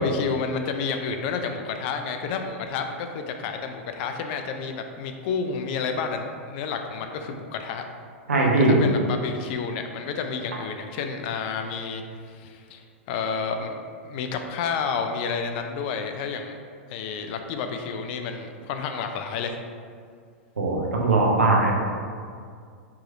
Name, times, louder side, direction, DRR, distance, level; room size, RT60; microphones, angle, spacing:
voice 1, 0.0-7.8 8.6-12.0 12.3-13.8 14.0-16.5 16.9-19.6, left 5 dB, 50° left, 6 dB, 0.4 m, -30 dB
voice 2, 8.3-8.8 20.6-21.7, right 2 dB, 85° right, -1 dB, 0.7 m, -20 dB
4.7 x 3.0 x 2.5 m, 2.1 s
hypercardioid pair, 105°, 7 cm